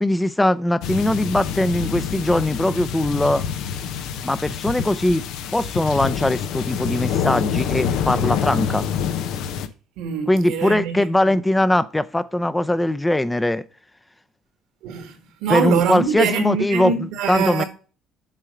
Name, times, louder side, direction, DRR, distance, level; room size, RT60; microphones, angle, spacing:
voice 1, 0.0-3.4 4.2-5.2 5.5-8.9 10.3-13.6 15.5-16.9 17.3-17.6, left 1 dB, 10° left, 0.5 m, -20 dB
sound 1, 0.8-9.7, left 8 dB, 75° left, 0.7 m, -26 dB
voice 2, 10.0-11.4 14.8-17.6, right 7 dB, 75° right, 1.7 m, -24 dB
7.6 x 3.7 x 6.4 m
supercardioid pair, 90°, 0 cm